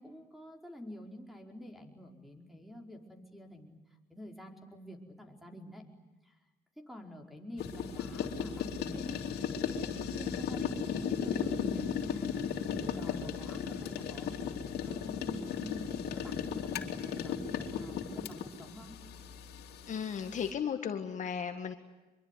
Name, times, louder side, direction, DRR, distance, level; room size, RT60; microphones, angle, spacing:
voice 1, 0.0-3.8 4.1-5.8 6.2-6.4 6.8-12.3 12.7-14.4 14.8-18.9, equal, ahead, 3 dB, 4.8 m, -48 dB
sound 1, 7.6-20.5, left 7 dB, 70° left, 3.4 m, -36 dB
voice 2, 19.9-21.7, left 7 dB, 45° left, 7 dB, 1.9 m, -35 dB
25.0 x 23.0 x 9.9 m, 1.1 s
cardioid pair, 110°, 17 cm